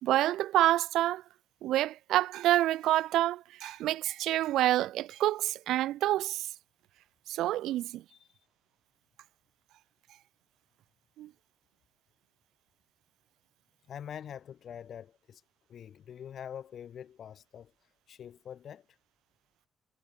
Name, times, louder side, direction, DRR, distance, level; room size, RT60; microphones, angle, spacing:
voice 1, 0.0-1.2 1.6-6.5 7.3-8.0 11.2-11.3, right 14 dB, 85° right, 1.5 m, -28 dB
voice 2, 13.9-15.4 15.7-17.7 18.1-18.9, left 9 dB, 60° left, 7.4 m, -44 dB
cardioid pair, 90°, 0 cm